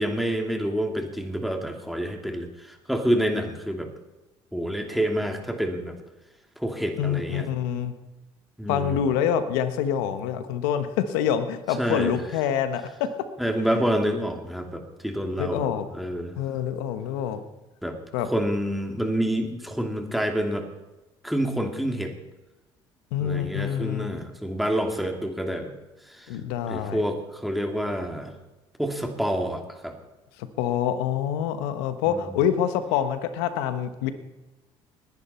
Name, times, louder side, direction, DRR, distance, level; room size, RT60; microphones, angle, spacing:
voice 1, 0.0-3.9 4.5-6.0 6.6-7.5 8.6-9.0 11.8-12.2 13.4-16.4 17.8-18.0 18.2-20.7 21.2-22.1 23.2-25.7 26.1-26.3 26.7-28.3 28.8-29.9 32.1-32.5, equal, ahead, 3 dB, 2.7 m, -28 dB
voice 2, 7.0-7.9 8.7-13.1 13.7-13.8 15.4-15.9 16.4-17.5 18.1-18.3 23.1-24.1 26.3-27.0 30.4-34.1, left 9 dB, 90° left, 10 dB, 1.2 m, -26 dB
20.0 x 11.0 x 4.4 m, 1.1 s
supercardioid pair, 80°, 12 cm